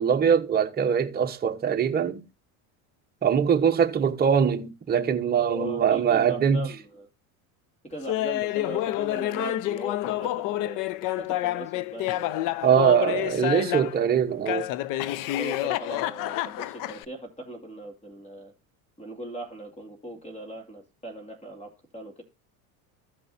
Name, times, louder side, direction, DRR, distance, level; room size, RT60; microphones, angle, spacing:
voice 1, 0.0-2.2 3.2-6.7 12.6-14.7, right 8 dB, 20° right, 1.1 m, -22 dB
voice 2, 5.4-7.1 7.8-13.3 15.3-18.5 19.0-22.2, right 1 dB, 15° left, 2.4 m, -40 dB
Laughter, 8.1-14.0 14.5-17.1, left 15 dB, 50° left, 0.6 m, -28 dB
15.0 x 5.3 x 2.7 m
supercardioid pair, 100°, 42 cm